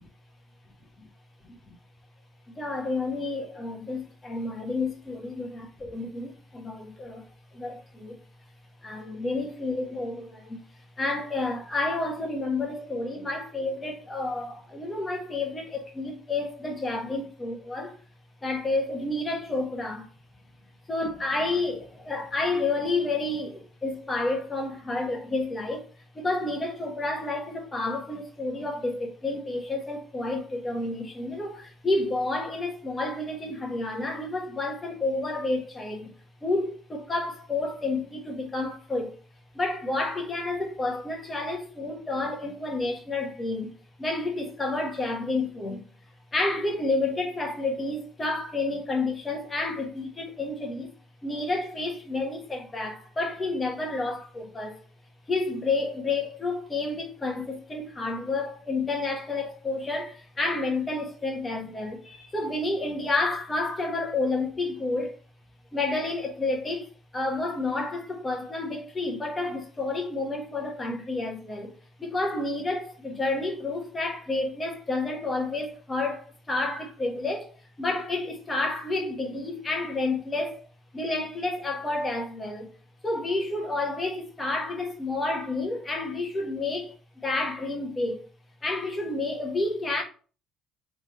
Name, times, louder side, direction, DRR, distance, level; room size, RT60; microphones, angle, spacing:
voice 1, 2.5-8.2 8.8-10.6 11.0-18.0 18.4-20.1 20.9-25.9 26.1-36.1 36.4-39.2 39.5-43.7 44.0-45.8 46.3-50.9 51.2-54.8 55.3-65.1 65.7-71.7 72.0-80.7 80.9-82.7 83.0-88.3 88.6-90.0, left 2 dB, 20° left, 1.4 m, -30 dB
3.6 x 3.5 x 4.2 m
cardioid pair, 115°, 0 cm